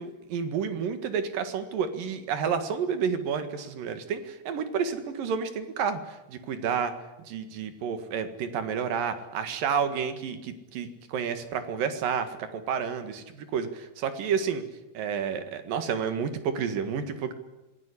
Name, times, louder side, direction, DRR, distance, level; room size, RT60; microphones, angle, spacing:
voice 1, 0.0-6.9 7.3-14.6 14.9-17.3, right 7 dB, 70° right, 9 dB, 3.4 m, -30 dB
26.0 x 17.0 x 9.8 m, 1.0 s
omnidirectional pair, 4.2 m